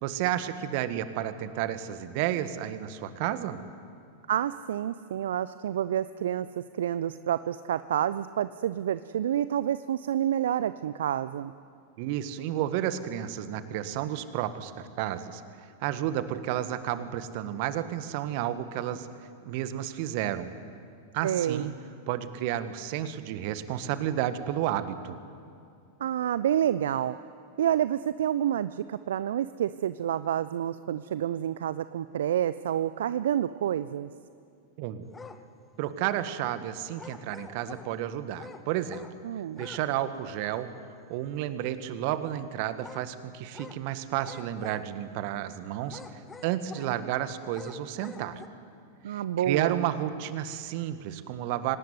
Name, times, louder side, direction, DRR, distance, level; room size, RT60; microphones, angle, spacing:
voice 1, 0.0-3.6 12.0-19.1 19.4-20.5 21.1-21.7 22.1-25.2 34.8-35.1 35.8-39.0 39.6-40.7 41.1-48.4 49.1-51.8, right 12 dB, 50° right, 11 dB, 1.6 m, -31 dB
voice 2, 4.3-11.5 21.2-21.7 26.0-27.2 27.6-34.1 39.2-39.6 49.0-49.8, right 10 dB, 65° right, 15 dB, 0.6 m, -28 dB
sound 1, 35.1-35.4 37.0-37.9 38.4-39.2 39.5-39.9 40.1-40.2 42.8-43.1 43.5-43.8 44.2-45.1 45.8-47.0 47.5-48.5, left 4 dB, 15° left, 1.6 m, -46 dB
25.5 x 18.5 x 9.5 m, 2.5 s
figure-of-eight pair, 90°, 0 cm